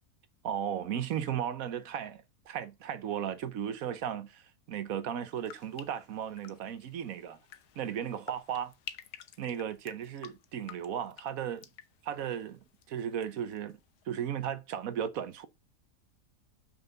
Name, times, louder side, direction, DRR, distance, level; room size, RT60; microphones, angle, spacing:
voice 1, 0.4-7.4 7.8-8.7 9.4-11.7 12.0-12.6 12.9-13.8 14.1-15.5, right 9 dB, 65° right, 1.2 m, -35 dB
sound 1, 5.3-13.3 13.5-14.1, left 10 dB, 90° left, 1.4 m, -51 dB
6.8 x 5.8 x 3.9 m
omnidirectional pair, 1.6 m